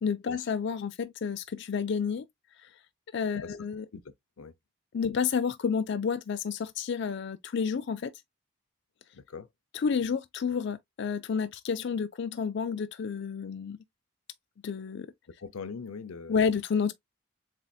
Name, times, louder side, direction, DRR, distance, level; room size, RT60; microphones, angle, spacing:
voice 1, 0.0-2.2 2.6-2.7 3.1-3.9 4.9-8.1 9.7-13.8 14.6-15.1 16.3-16.9, left 6 dB, 55° left, 0.4 m, -30 dB
voice 2, 9.1-9.5 15.4-16.4, left 5 dB, 90° left, 0.6 m, -41 dB
7.4 x 2.6 x 2.3 m
head